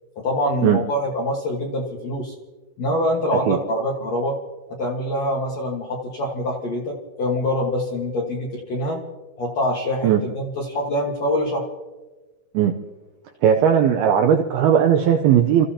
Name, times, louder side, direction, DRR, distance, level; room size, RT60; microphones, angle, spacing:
voice 1, 0.1-2.3 2.8-4.4 4.7-9.0 9.4-11.6, left 1 dB, 60° left, -2 dB, 1.8 m, -25 dB
voice 2, 13.4-15.7, right 9 dB, 80° right, 4 dB, 2.2 m, -17 dB
29.5 x 14.5 x 2.9 m, 1.2 s
omnidirectional pair, 5.3 m